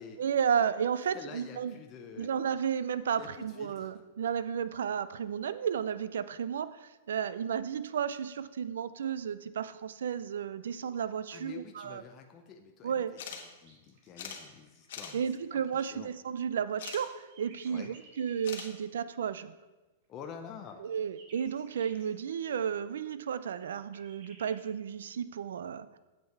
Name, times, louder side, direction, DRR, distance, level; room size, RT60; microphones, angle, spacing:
voice 1, 0.2-1.8 2.2-12.0 12.8-13.1 15.1-19.5 20.8-26.0, right 7 dB, 85° right, 14 dB, 0.5 m, -33 dB
voice 2, 1.1-2.3 3.2-3.3 3.6-3.9 11.3-15.2 15.5-15.6 15.9-16.1 17.7-17.9 20.1-20.8, left 7 dB, 25° left, 4 dB, 0.7 m, -48 dB
sound 1, 13.2-13.4 13.7-13.8 14.2-14.4 14.9-15.1 16.8-17.0 18.4-18.7, left 7 dB, 65° left, 1.3 m, -41 dB
sound 2, 13.4-15.5 16.8-18.7 20.2-22.1 23.6-24.6, right 3 dB, 50° right, 2.1 m, -58 dB
8.9 x 7.6 x 4.5 m, 1.1 s
supercardioid pair, 150°, 0 cm